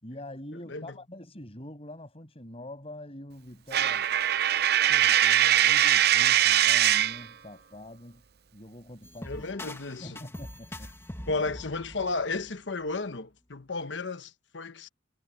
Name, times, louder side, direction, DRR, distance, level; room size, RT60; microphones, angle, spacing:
voice 1, 0.0-4.1 4.9-8.2 8.5-9.5 10.0-10.9, left 1 dB, 35° left, 7.3 m, -44 dB
Coin (dropping), 3.7-7.2, right 11 dB, 60° right, 0.7 m, -22 dB
sound 1, 9.0-13.0, left 1 dB, 15° left, 2.2 m, -43 dB
voice 2, 9.2-10.2 11.3-14.9, left 3 dB, 75° left, 1.1 m, -33 dB
head